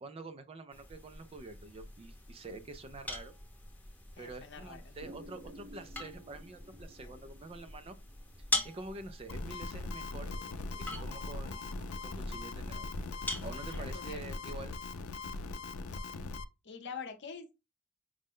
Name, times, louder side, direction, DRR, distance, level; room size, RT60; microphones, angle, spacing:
voice 1, 0.0-3.3 4.2-8.0 8.6-10.3 10.8-11.7 12.0-12.9 13.4-14.7, right 2 dB, 25° right, 0.3 m, -47 dB
sound 1, 0.7-14.2, left 2 dB, 10° left, 0.8 m, -43 dB
voice 2, 4.2-5.0 7.0-7.1 13.7-14.2 16.6-17.5, left 6 dB, 55° left, 0.8 m, -45 dB
sound 2, 5.0-9.3 10.2-14.0, right 1 dB, 45° right, 1.1 m, -56 dB
sound 3, 9.3-16.4, left 3 dB, 85° left, 0.5 m, -40 dB
5.0 x 2.1 x 3.5 m
head